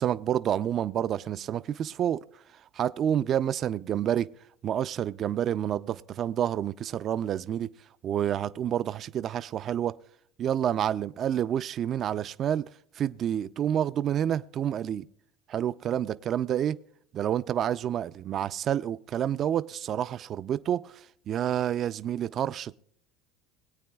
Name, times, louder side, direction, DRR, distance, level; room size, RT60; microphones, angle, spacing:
voice 1, 0.0-2.2 2.8-4.3 4.6-7.7 8.0-10.0 10.4-12.6 13.0-15.0 15.5-16.8 17.1-22.8, right 10 dB, 40° right, 0.3 m, -28 dB
22.0 x 8.6 x 2.3 m
supercardioid pair, 110°, 0 cm